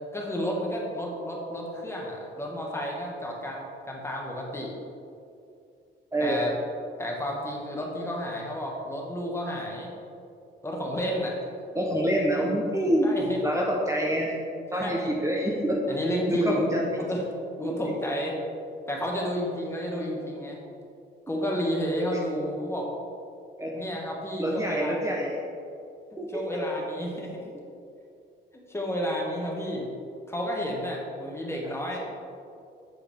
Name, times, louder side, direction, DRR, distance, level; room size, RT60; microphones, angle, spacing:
voice 1, 0.1-4.7 6.2-6.5 7.0-9.9 10.6-11.3 13.0-13.5 14.7-15.1 15.9-16.6 17.0-17.2 17.6-18.4 18.9-20.6 21.3-22.9 23.7-25.0 26.3-27.5 28.7-29.9 30.3-32.0, equal, 15° left, -2 dB, 1.3 m, -31 dB
voice 2, 11.7-13.2 13.4-14.4 14.7-15.8 16.3-16.8 17.6-17.7 23.6-23.7 24.4-25.4 26.2-26.3 31.6-31.9, equal, 15° right, -3 dB, 0.8 m, -26 dB
7.9 x 4.7 x 3.5 m, 2.5 s
cardioid pair, 90°, 20 cm